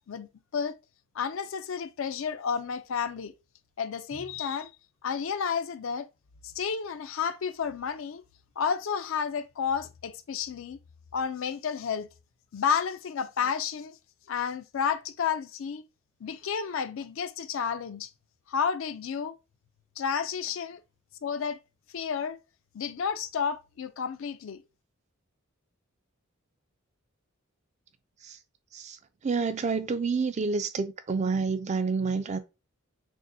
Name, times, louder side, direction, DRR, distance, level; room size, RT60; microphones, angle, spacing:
voice 1, 0.1-0.8 1.1-3.3 3.8-4.7 5.0-6.1 6.4-8.2 8.6-10.8 11.1-12.1 12.5-14.0 14.3-15.8 16.2-18.1 18.5-19.4 20.0-20.8 21.2-21.6 21.9-22.4 22.7-24.6, left 6 dB, 65° left, 0.4 m, -31 dB
voice 2, 29.2-32.4, right 4 dB, 35° right, 0.4 m, -28 dB
6.1 x 2.1 x 2.6 m
head